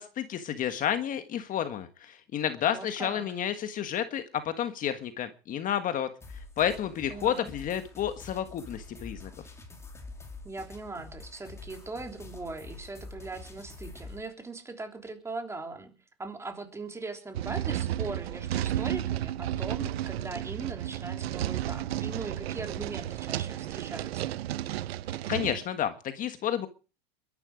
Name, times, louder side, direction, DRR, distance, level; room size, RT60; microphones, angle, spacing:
voice 1, 0.0-6.1 6.6-9.3 25.3-26.7, left 10 dB, 25° left, 9 dB, 1.5 m, -30 dB
voice 2, 2.7-3.3 7.1-7.5 10.4-15.9 16.2-24.4, right 3 dB, 10° right, 5 dB, 3.5 m, -40 dB
sound 1, 6.2-14.2, left 3 dB, 10° left, 3.6 m, -46 dB
sound 2, 17.3-25.6, right 12 dB, 90° right, 1.0 m, -33 dB
22.0 x 11.0 x 5.0 m, 0.36 s
supercardioid pair, 150°, 30 cm